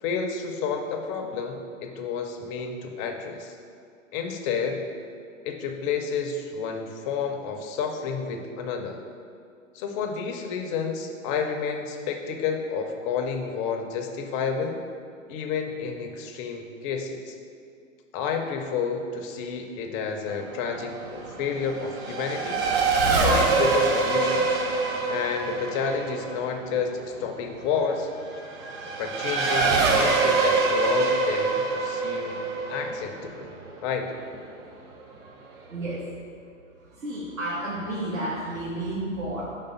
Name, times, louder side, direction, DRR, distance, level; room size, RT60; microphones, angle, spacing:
voice 1, 0.0-3.6 4.1-4.9 5.4-9.0 9.7-14.8 15.3-17.4 18.1-22.6 23.1-24.6 25.1-28.1 29.0-32.4 32.7-33.5 33.8-34.1, left 6 dB, 25° left, 4 dB, 0.5 m, -30 dB
Race car auto racing / Accelerating revving vroom, 20.3-34.4, right 4 dB, 35° right, 0.9 m, -25 dB
voice 2, 35.7-36.1 36.8-39.4, right 1 dB, 85° right, -9 dB, 1.4 m, -31 dB
5.1 x 4.0 x 5.5 m, 2.5 s
figure-of-eight pair, 110°, 40 cm